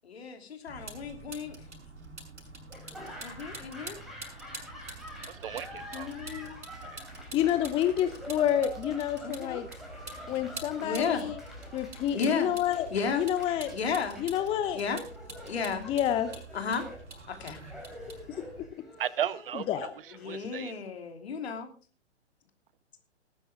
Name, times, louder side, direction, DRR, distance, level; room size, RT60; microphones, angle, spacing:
voice 1, 0.1-1.5 3.2-4.0 9.2-9.6 10.8-11.3 12.1-12.5 12.9-13.2 13.7-14.2 14.7-15.0 15.4-15.8 16.5-16.8 17.3-17.6 20.1-21.7, left 5 dB, 60° left, 3.0 m, -33 dB
Vehicle, 0.7-18.6, right 2 dB, 75° right, 6.6 m, -46 dB
Laughter / Applause, 2.7-20.8, equal, ahead, 4.5 m, -47 dB
voice 2, 5.3-6.2 6.8-7.0 19.0-19.9 20.2-20.8, right 10 dB, 50° right, 0.9 m, -35 dB
voice 3, 5.9-6.5 7.3-9.7 10.3-11.4 11.7-12.9 13.1-13.7 14.2-14.8 15.8-16.3 18.6-18.7 19.7-19.9, left 11 dB, 15° left, 0.7 m, -29 dB
19.5 x 9.9 x 3.5 m
figure-of-eight pair, 115°, 35 cm